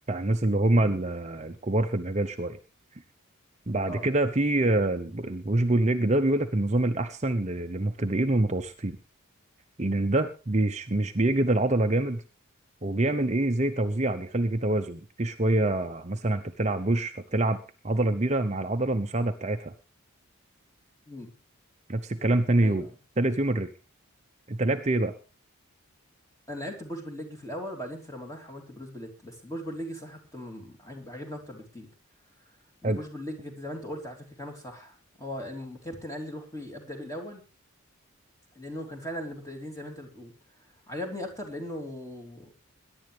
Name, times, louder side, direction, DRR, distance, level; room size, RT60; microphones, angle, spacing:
voice 1, 0.0-2.6 3.7-9.0 9.8-12.2 12.8-17.6 17.8-19.7 21.9-22.9 23.2-23.7 24.5-25.1 32.8-33.0, right 2 dB, 30° right, 6 dB, 0.8 m, -26 dB
voice 2, 22.6-22.9 26.5-31.9 32.8-37.4 38.5-40.3 40.9-42.6, equal, 15° left, 2 dB, 3.3 m, -39 dB
21.5 x 11.0 x 3.3 m, 0.31 s
head